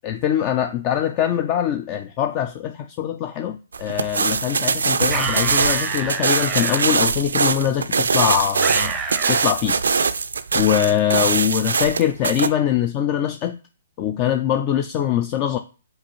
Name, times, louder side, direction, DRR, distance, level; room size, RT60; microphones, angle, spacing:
voice 1, 0.0-9.0 9.3-9.8 10.5-13.6 14.0-15.6, left 10 dB, 30° left, 0.3 m, -22 dB
sound 1, 3.7-12.5, right 5 dB, 80° right, 0.3 m, -22 dB
sound 2, 5.1-6.8 8.6-9.5, right 5 dB, 20° right, 0.5 m, -28 dB
5.2 x 2.4 x 3.0 m
hypercardioid pair, 140°, 0 cm